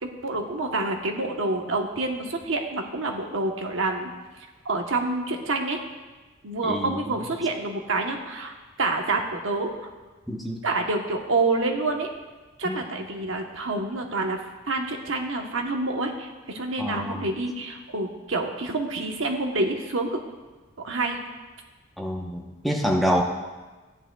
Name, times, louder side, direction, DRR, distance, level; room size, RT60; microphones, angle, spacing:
voice 1, 0.0-4.1 4.6-5.8 6.4-9.7 10.6-12.1 12.6-14.4 14.7-20.2 20.8-21.2, right 2 dB, 70° right, 3 dB, 1.0 m, -27 dB
voice 2, 6.6-7.3 10.3-10.6 12.6-12.8 16.8-17.2 22.0-23.2, equal, ahead, -1 dB, 0.9 m, -27 dB
14.5 x 10.5 x 2.3 m, 1.3 s
head